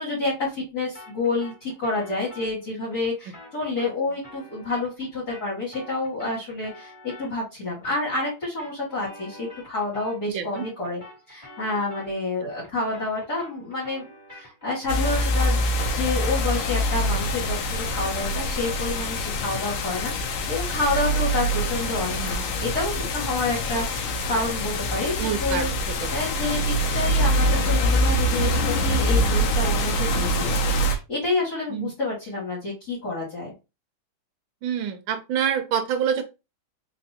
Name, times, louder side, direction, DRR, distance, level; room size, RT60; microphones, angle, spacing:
voice 1, 0.0-11.0 11.3-15.7 15.9-25.7 26.1-33.5, left 2 dB, 45° left, -7 dB, 2.5 m, -29 dB
sound 1, 0.9-10.3 10.5-19.8, left 1 dB, 15° left, 2.4 m, -47 dB
voice 2, 10.3-10.6 25.2-25.6 31.7-31.9 34.6-36.2, right 8 dB, 70° right, 8 dB, 1.4 m, -26 dB
sound 2, 14.9-31.0, equal, 75° left, 1.6 m, -24 dB
4.0 x 3.3 x 2.7 m, 0.26 s
omnidirectional pair, 2.4 m